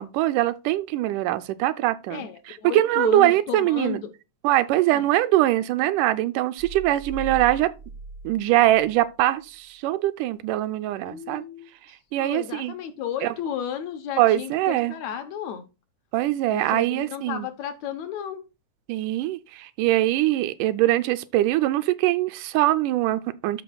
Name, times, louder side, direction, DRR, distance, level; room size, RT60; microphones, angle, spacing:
voice 1, 0.0-4.0 4.4-7.7 8.2-11.4 12.1-12.7 13.2-13.3 14.2-14.9 16.1-17.5 18.9-23.6, right 15 dB, 85° right, 2.1 m, -22 dB
voice 2, 2.1-4.1 4.9-5.0 11.0-11.7 12.2-15.6 16.5-18.4, left 9 dB, 70° left, 2.0 m, -33 dB
sound 1, 6.6-9.1 9.5-9.6, right 2 dB, 60° right, 0.7 m, -39 dB
13.0 x 5.0 x 2.3 m
omnidirectional pair, 3.6 m